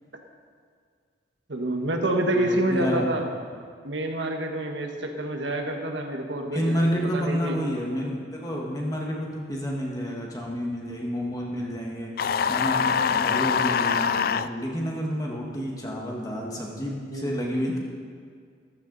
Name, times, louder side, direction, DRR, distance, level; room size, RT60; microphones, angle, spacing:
voice 1, 1.5-3.3 3.8-7.6 17.1-17.8, right 1 dB, 70° right, 3 dB, 1.5 m, -28 dB
voice 2, 2.3-3.2 6.4-12.1 12.5-17.8, equal, 20° left, -2 dB, 1.7 m, -29 dB
sound 1, 12.2-14.5, left 7 dB, 50° left, 0.3 m, -24 dB
14.5 x 13.5 x 4.1 m, 2.1 s
head